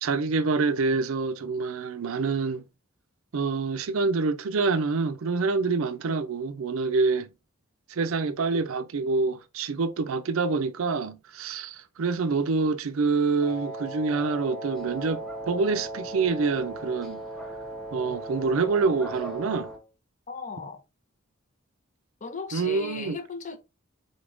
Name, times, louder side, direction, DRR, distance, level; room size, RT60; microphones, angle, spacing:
voice 1, 0.0-2.6 3.3-7.3 7.9-17.2 17.9-19.7 22.5-23.2, right 4 dB, 70° right, 0.5 m, -26 dB
Wind instrument woodwind instrument, 13.4-19.9, right 1 dB, 65° left, 1.5 m, -37 dB
sound 1, 14.7-19.8, right 1 dB, ahead, 0.8 m, -47 dB
voice 2, 20.3-20.8 22.2-23.6, left 3 dB, 35° left, 0.6 m, -36 dB
3.9 x 3.4 x 2.5 m
head